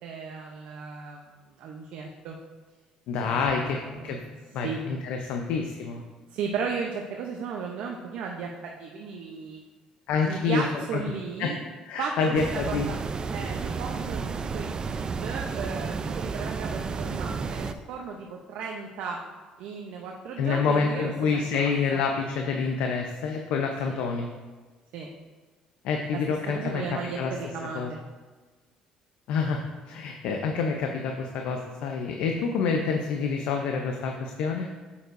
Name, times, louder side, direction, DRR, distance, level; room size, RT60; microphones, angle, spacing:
voice 1, 0.0-1.3 1.6-2.3 3.2-4.3 4.6-4.8 6.3-9.6 10.3-11.5 12.0-13.0 13.3-15.0 15.2-19.2 19.6-22.0 23.9-24.0 24.9-25.1 26.1-26.2 26.5-28.0, right 5 dB, 75° right, 1 dB, 0.7 m, -35 dB
voice 2, 3.1-4.2 4.5-6.0 10.1-10.7 10.9-11.0 11.4-11.5 11.9-12.9 20.4-24.3 25.8-27.3 27.6-27.9 29.3-29.6 29.9-34.7, left 5 dB, 75° left, 3 dB, 0.7 m, -27 dB
sound 1, 12.3-17.7, right 5 dB, 35° right, 0.5 m, -32 dB
9.2 x 7.0 x 2.6 m, 1.3 s
supercardioid pair, 80°, 2 cm